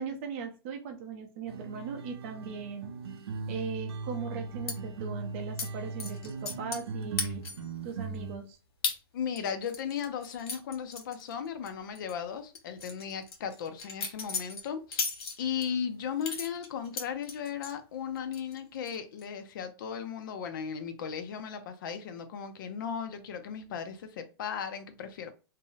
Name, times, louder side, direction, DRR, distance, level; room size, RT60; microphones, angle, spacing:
voice 1, 0.0-2.9 3.5-7.4 7.8-8.6, right 6 dB, 30° right, 0.6 m, -39 dB
sound 1, 1.5-8.4, right 4 dB, 90° right, 0.6 m, -39 dB
sound 2, 4.7-4.8 5.6-5.7 6.0-6.9 7.2-7.7 8.1-8.2 8.8-9.0 9.4-11.7 11.9-12.1 12.5-15.7 16.2-17.7 18.1-18.6 18.8-19.2, left 4 dB, 85° left, 1.0 m, -36 dB
voice 2, 9.1-15.1 15.4-25.3, left 7 dB, 55° left, 0.5 m, -36 dB
2.7 x 2.0 x 3.8 m
supercardioid pair, 170°, 13 cm